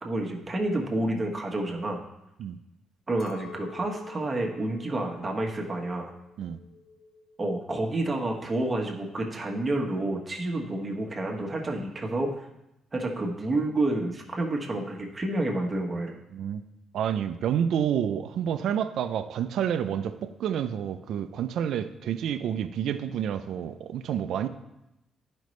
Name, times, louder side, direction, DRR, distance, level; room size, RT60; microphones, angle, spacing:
voice 1, 0.0-2.0 3.1-6.1 7.4-12.4 12.9-16.2, right 2 dB, 30° right, 0 dB, 1.1 m, -29 dB
Chink clink, 3.2-7.6 7.8-8.6, left 3 dB, 45° left, 0.6 m, -47 dB
voice 2, 16.3-16.6 16.9-24.5, right 9 dB, 75° right, 10 dB, 0.4 m, -29 dB
10.5 x 5.1 x 3.1 m, 0.89 s
cardioid pair, 90°, 0 cm